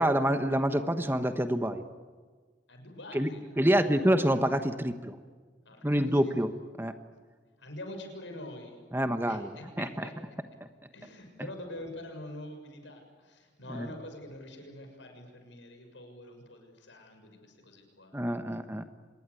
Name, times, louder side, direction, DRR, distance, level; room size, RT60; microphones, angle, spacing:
voice 1, 0.0-1.8 3.1-3.3 3.6-5.1 5.8-6.5 6.8-6.9 8.9-9.5 9.8-10.1 13.7-13.9 18.1-18.9, equal, 10° right, 9 dB, 1.2 m, -27 dB
voice 2, 2.7-4.0 5.6-6.4 7.6-8.8 9.3-10.1 10.9-18.2, left 1 dB, 80° left, 4 dB, 6.7 m, -45 dB
26.0 x 21.0 x 9.9 m, 1.5 s
head